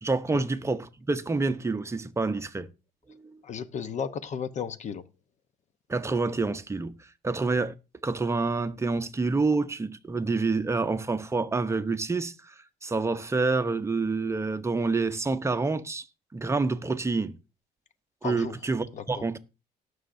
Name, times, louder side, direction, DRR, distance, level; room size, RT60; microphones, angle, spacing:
voice 1, 0.0-2.7 5.9-6.9 7.2-7.7 8.0-12.5 12.8-16.0 16.3-17.3 18.2-19.4, right 3 dB, 15° right, 0.7 m, -27 dB
voice 2, 3.4-5.0 18.2-18.6 18.9-19.2, left 7 dB, 45° left, 0.8 m, -34 dB
18.5 x 6.4 x 2.6 m
cardioid pair, 110°, 17 cm